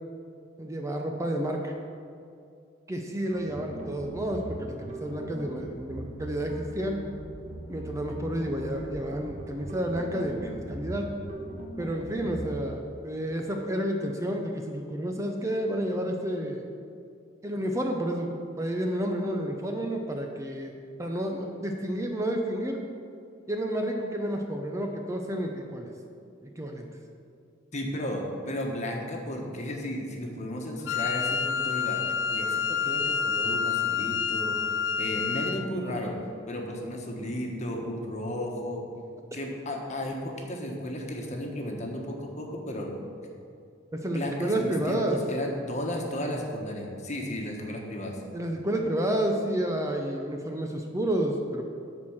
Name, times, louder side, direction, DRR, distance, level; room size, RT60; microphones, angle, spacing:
voice 1, 0.6-1.7 2.9-7.0 7.7-11.1 11.8-16.6 17.4-22.8 23.5-25.9 26.4-26.9 43.9-45.2 48.3-51.6, right 1 dB, 15° right, 2 dB, 0.6 m, -30 dB
sound 1, 3.3-12.5, right 1 dB, 40° right, 1.3 m, -40 dB
voice 2, 27.7-32.0 32.3-34.6 35.0-36.2 36.5-38.8 39.3-43.0 44.1-48.2, left 1 dB, 35° left, 1 dB, 1.3 m, -34 dB
Wind instrument woodwind instrument, 30.9-35.7, left 6 dB, 65° left, 0.4 m, -28 dB
11.0 x 4.4 x 7.2 m, 2.5 s
head